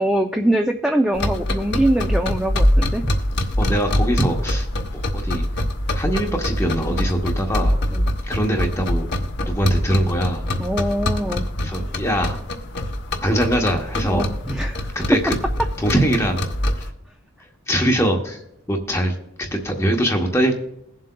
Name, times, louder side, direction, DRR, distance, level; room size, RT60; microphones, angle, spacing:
voice 1, 0.0-3.0 7.9-8.1 10.6-11.5 14.0-14.9, right 1 dB, 5° right, 3 dB, 0.4 m, -22 dB
sound 1, 1.1-16.9, left 1 dB, 55° left, 0.9 m, -24 dB
voice 2, 3.6-4.7 4.9-5.4 5.9-7.8 8.3-9.1 9.4-10.5 11.6-12.4 13.2-14.3 14.9-15.3 15.8-16.4 16.8-16.9 17.7-18.4 18.7-20.6, equal, 15° left, 2 dB, 0.9 m, -22 dB
21.5 x 7.5 x 2.2 m, 0.81 s
head